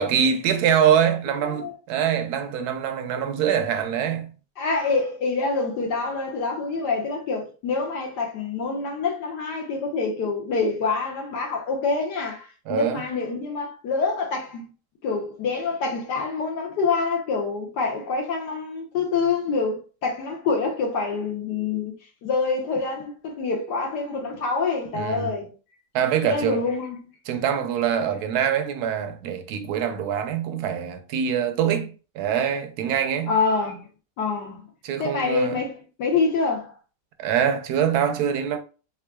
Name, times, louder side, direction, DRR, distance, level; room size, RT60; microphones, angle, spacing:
voice 1, 0.0-4.3 12.7-13.0 24.9-25.3 25.9-26.6 27.3-33.3 34.8-35.6 37.2-38.6, right 8 dB, 70° right, 1.1 m, -24 dB
voice 2, 4.6-14.7 15.0-21.9 22.2-25.5 26.2-27.0 28.0-28.1 33.3-33.9 34.2-34.7 35.0-36.7, left 4 dB, 70° left, 1.4 m, -26 dB
3.6 x 3.6 x 2.3 m
omnidirectional pair, 1.9 m